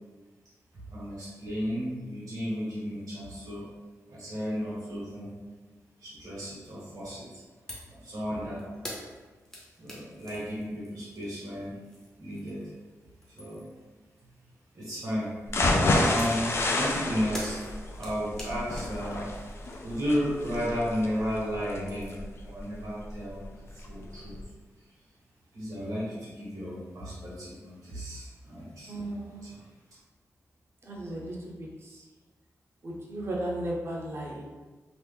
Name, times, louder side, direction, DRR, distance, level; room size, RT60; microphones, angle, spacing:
voice 1, 0.9-3.7 4.1-5.3 6.0-7.3 7.9-8.6 9.8-11.7 12.2-12.6 13.4-13.6 14.7-15.4 16.0-19.3 19.8-24.3 25.5-28.9 29.4-29.5, equal, 75° right, -8 dB, 1.2 m, -33 dB
sound 1, 7.7-8.0 8.2-12.7 13.1-13.8 16.2-21.3 21.6-22.3, equal, 10° left, 0.7 m, -45 dB
sound 2, 15.5-23.4 23.8-23.9 24.3-24.4, left 2 dB, 45° left, 0.4 m, -29 dB
voice 2, 28.9-29.5 30.8-32.0 32.8-34.4, right 1 dB, 45° right, -2 dB, 0.7 m, -35 dB
3.0 x 2.5 x 3.4 m, 1.3 s
wide cardioid pair, 150°, 6 cm